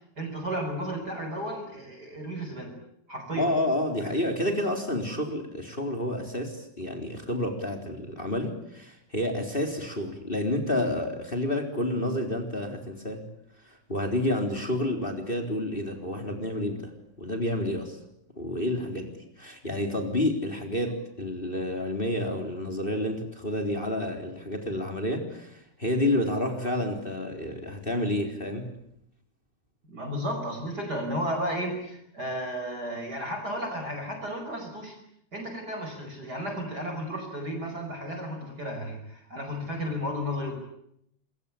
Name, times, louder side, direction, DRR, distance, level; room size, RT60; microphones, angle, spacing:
voice 1, 0.2-2.7 3.1-3.5 29.9-35.0 35.3-40.6, equal, 30° right, 4 dB, 5.9 m, -33 dB
voice 2, 3.3-13.2 13.7-16.9 17.2-18.0 18.4-28.7, left 1 dB, 15° left, 4 dB, 4.0 m, -29 dB
27.0 x 23.0 x 8.7 m, 0.73 s
omnidirectional pair, 3.4 m